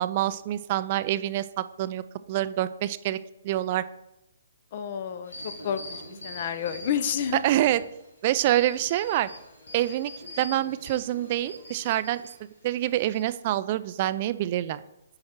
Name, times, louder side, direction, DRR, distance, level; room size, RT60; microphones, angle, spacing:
voice 1, 0.0-2.0 2.3-3.2 3.4-3.8 7.4-7.8 8.2-9.3 9.7-10.1 10.4-12.2 12.6-14.8, right 13 dB, 40° right, 14 dB, 0.3 m, -26 dB
voice 2, 4.7-7.4, left 8 dB, 45° left, 12 dB, 0.6 m, -30 dB
sound 1, 5.2-8.0 8.4-12.3 12.9-13.2, left 1 dB, 85° left, 2.6 m, -44 dB
8.6 x 4.8 x 4.3 m, 0.90 s
figure-of-eight pair, 135°, 0 cm